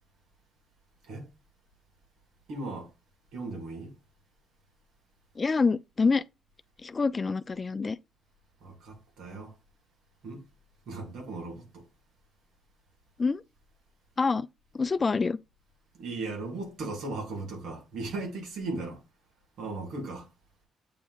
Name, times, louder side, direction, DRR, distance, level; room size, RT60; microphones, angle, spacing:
voice 1, 2.5-2.9 3.3-3.9 8.6-9.5 10.2-10.4 10.9-11.8 16.0-19.0 19.6-20.3, right 3 dB, 80° right, 2.6 m, -37 dB
voice 2, 5.4-6.2 6.8-8.0 13.2-13.4 14.2-14.5 14.7-15.4, left 4 dB, 30° left, 0.4 m, -26 dB
8.5 x 3.0 x 4.0 m
cardioid pair, 90°, 0 cm